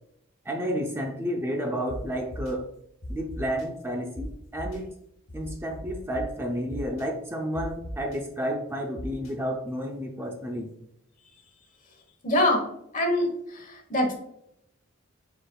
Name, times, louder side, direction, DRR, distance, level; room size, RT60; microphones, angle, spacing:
voice 1, 0.5-2.7 3.1-4.9 5.3-10.7, equal, 10° right, 2 dB, 0.5 m, -31 dB
sound 1, 1.9-2.0 2.3-2.5 3.0-3.6 4.1-4.2 4.6-4.8 5.3-6.2 6.7-7.0 7.5-8.2 9.0-9.3, left 1 dB, 75° left, 1.1 m, -38 dB
voice 2, 12.2-12.7 12.9-14.1, left 1 dB, 40° left, 3 dB, 1.1 m, -24 dB
4.9 x 4.3 x 2.3 m, 0.75 s
head